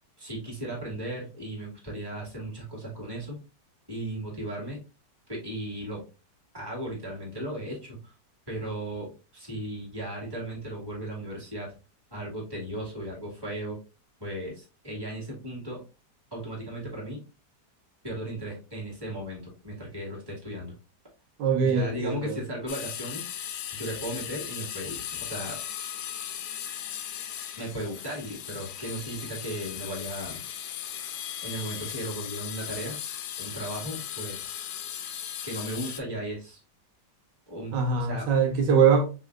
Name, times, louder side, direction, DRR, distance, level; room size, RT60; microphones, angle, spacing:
voice 1, 0.2-3.4 3.9-4.8 5.3-6.0 6.5-8.1 8.5-11.7 12.1-13.8 14.2-15.8 16.3-17.2 18.0-20.7 21.6-23.3 23.7-25.6 27.6-30.4 31.4-33.0 33.4-34.8 35.4-36.6 37.5-38.3, right 1 dB, 15° right, 2.1 m, -36 dB
voice 2, 21.4-22.4 37.7-39.0, right 6 dB, 80° right, 1.5 m, -22 dB
sound 1, 22.7-36.0, left 10 dB, 70° left, 1.1 m, -37 dB
5.5 x 3.3 x 2.5 m
omnidirectional pair, 1.9 m